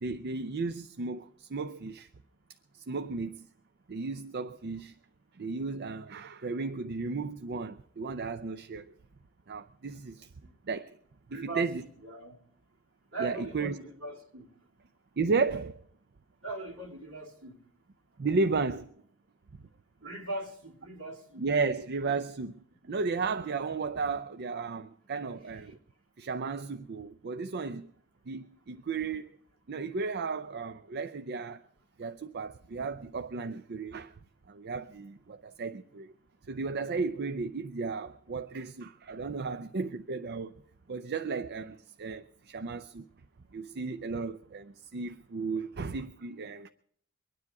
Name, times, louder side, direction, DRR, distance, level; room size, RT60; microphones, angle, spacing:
voice 1, 0.0-2.1 2.9-3.5 3.9-4.9 5.4-8.9 9.5-10.3 10.7-10.9 11.3-11.8 13.2-13.8 15.2-15.8 18.2-18.9 21.4-22.6 22.9-25.8 26.2-27.9 28.3-29.4 29.7-31.6 32.0-34.1 34.5-36.1 36.5-40.6 40.9-43.0 43.5-46.7, right 4 dB, 50° right, 0.5 m, -34 dB
voice 2, 11.3-12.4 13.1-14.5 16.4-17.5 20.0-21.4, right 3 dB, 70° right, 3.5 m, -40 dB
23.5 x 9.8 x 4.7 m
head